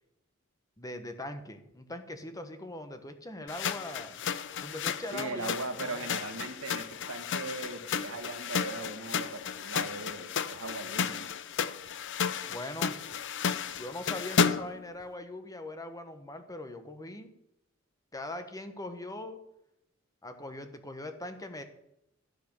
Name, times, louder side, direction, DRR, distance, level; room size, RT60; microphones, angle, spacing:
voice 1, 0.8-4.2 4.6-6.1 12.5-13.0 13.7-17.3 18.1-19.4 20.2-21.6, left 1 dB, 15° left, 8 dB, 1.2 m, -41 dB
sound 1, 3.5-14.8, left 6 dB, 60° left, 0.6 m, -33 dB
voice 2, 5.1-11.3, right 3 dB, 80° right, 6 dB, 1.7 m, -39 dB
13.5 x 7.7 x 6.8 m, 0.82 s
head